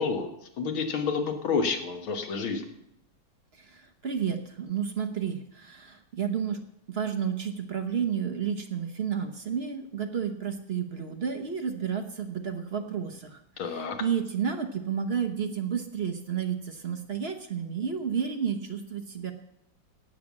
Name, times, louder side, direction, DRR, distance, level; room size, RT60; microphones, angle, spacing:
voice 1, 0.0-2.6 13.6-14.0, left 5 dB, 85° left, 5 dB, 2.3 m, -29 dB
voice 2, 3.6-6.6 6.9-19.3, right 7 dB, 45° right, 6 dB, 0.9 m, -31 dB
17.5 x 6.5 x 7.3 m, 0.80 s
omnidirectional pair, 2.2 m